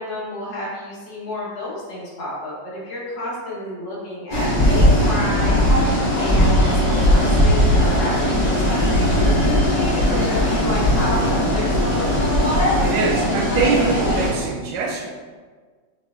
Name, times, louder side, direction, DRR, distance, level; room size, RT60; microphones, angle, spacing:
voice 1, 0.0-12.5, left 1 dB, 65° left, -6 dB, 1.9 m, -30 dB
sound 1, 4.3-14.3, equal, 30° left, 0.8 m, -18 dB
voice 2, 12.8-15.1, right 4 dB, 75° right, 0 dB, 1.1 m, -23 dB
6.2 x 3.1 x 2.4 m, 1.5 s
omnidirectional pair, 2.1 m